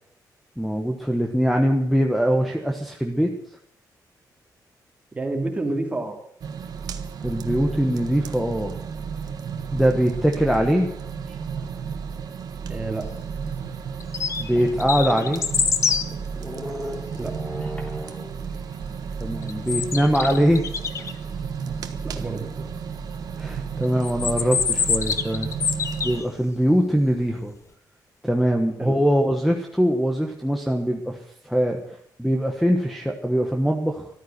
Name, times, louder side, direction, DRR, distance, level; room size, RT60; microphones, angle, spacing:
voice 1, 0.6-3.3 7.2-8.8 9.7-10.9 14.4-15.4 19.2-20.7 23.4-25.5 26.0-27.5 28.2-31.2 31.4-31.8 32.2-34.1, equal, ahead, 3 dB, 1.2 m, -22 dB
voice 2, 5.1-6.2 12.7-13.1 17.1-17.3 21.9-22.7 28.8-29.0, right 2 dB, 20° right, 3 dB, 2.7 m, -29 dB
sound 1, 6.4-26.2, right 6 dB, 65° right, 1.3 m, -33 dB
sound 2, 13.5-13.6 14.2-14.3 14.5-18.5 20.2-21.3, equal, 15° left, 3.0 m, -39 dB
sound 3, 14.0-14.5 14.8-16.1 19.4-21.1 24.0-26.2, left 6 dB, 45° left, 1.0 m, -25 dB
14.0 x 13.0 x 6.7 m, 0.71 s
wide cardioid pair, 160°, 7 cm